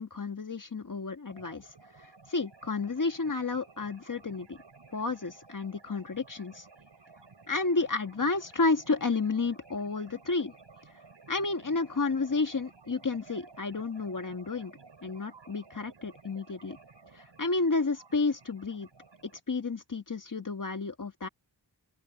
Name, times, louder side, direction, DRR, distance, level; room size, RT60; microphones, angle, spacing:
voice 1, 0.0-1.7 2.0-4.6 4.9-6.7 7.5-10.5 11.3-14.7 15.0-16.8 17.1-18.9 19.2-21.3, left 3 dB, 45° left, 1.7 m, -31 dB
sound 1, 1.3-19.4, right 4 dB, 90° right, 7.8 m, -55 dB
open air
wide cardioid pair, 80°, 42 cm